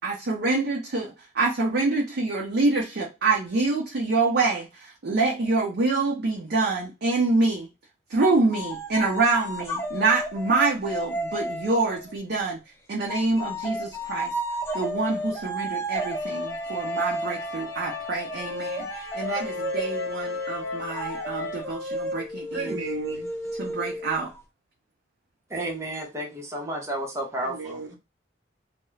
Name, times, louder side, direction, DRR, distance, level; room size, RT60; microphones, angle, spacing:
voice 1, 0.0-7.7 8.1-12.6 12.9-14.3 14.7-22.8 23.6-24.3, right 3 dB, 55° right, 0.5 m, -26 dB
sound 1, 8.2-12.1 13.1-24.4, equal, 15° left, 0.4 m, -32 dB
sound 2, 16.0-21.6, left 4 dB, 60° left, 0.7 m, -38 dB
voice 2, 22.5-23.5 27.4-27.9, right 4 dB, 85° right, 0.8 m, -34 dB
voice 3, 25.5-27.8, right 1 dB, 15° right, 0.7 m, -32 dB
2.3 x 2.0 x 3.1 m
head